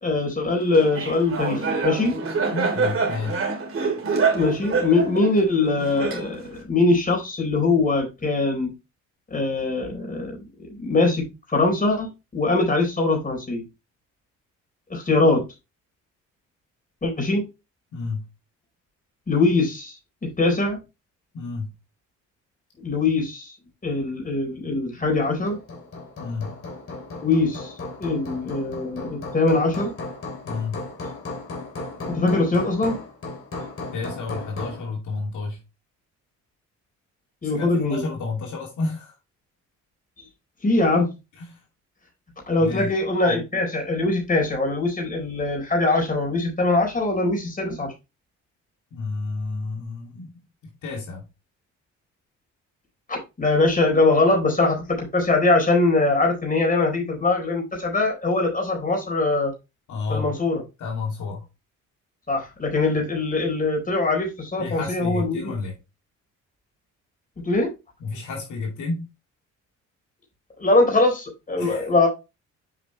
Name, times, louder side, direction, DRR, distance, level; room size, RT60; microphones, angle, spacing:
voice 1, 0.0-2.1 4.3-8.7 9.3-11.3 11.5-13.6 14.9-15.4 17.0-17.4 19.3-19.9 20.2-20.8 22.8-23.5 23.8-25.6 27.2-27.7 28.0-29.9 32.1-33.0 37.4-38.0 40.6-41.1 42.5-47.9 53.1-59.5 60.1-60.6 62.3-65.5 67.4-67.7 70.6-72.1, left 3 dB, 25° left, 4.0 m, -22 dB
Laughter, 0.7-6.6, right 4 dB, 45° right, 3.2 m, -26 dB
voice 2, 2.5-3.4 17.9-18.2 21.3-21.7 26.2-26.5 30.4-30.8 33.9-35.6 37.4-39.1 41.4-41.6 42.6-42.9 43.2-43.4 48.9-51.2 59.9-60.4 60.8-61.5 64.6-65.8 68.0-69.1 71.6-71.9, left 3 dB, 75° left, 2.7 m, -31 dB
Hammer, 25.2-34.9, left 2 dB, 45° left, 3.0 m, -36 dB
7.7 x 5.1 x 3.2 m
cardioid pair, 90°, 30 cm